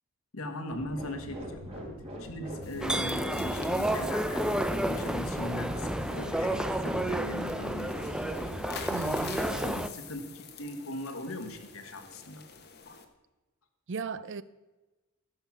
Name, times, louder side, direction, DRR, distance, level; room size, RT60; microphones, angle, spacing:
voice 1, 0.3-1.9 2.2-4.5 4.8-8.1 9.6-12.5, left 1 dB, 65° left, 1.4 m, -39 dB
sound 1, 0.7-9.5, equal, 30° right, 3.5 m, -41 dB
sound 2, 2.6-13.0, left 7 dB, 50° left, 1.1 m, -48 dB
sound 3, 2.8-9.9, right 1 dB, 5° right, 0.5 m, -31 dB
voice 2, 8.9-9.9 13.9-14.4, right 5 dB, 55° right, 0.5 m, -37 dB
16.0 x 5.7 x 7.3 m
head